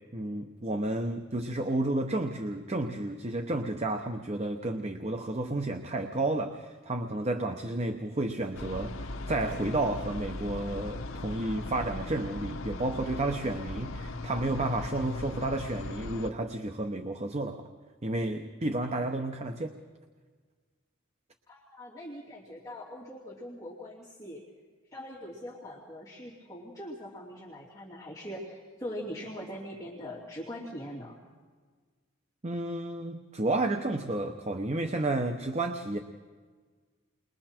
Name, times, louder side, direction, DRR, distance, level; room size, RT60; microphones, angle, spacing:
voice 1, 0.1-17.6 18.0-19.8 32.4-36.0, right 2 dB, 30° right, 5 dB, 0.9 m, -31 dB
sound 1, 8.5-16.3, left 2 dB, 75° left, 0.9 m, -38 dB
voice 2, 21.5-24.4 24.9-31.2, equal, 15° left, -6 dB, 2.8 m, -42 dB
30.0 x 22.0 x 4.5 m, 1.5 s
head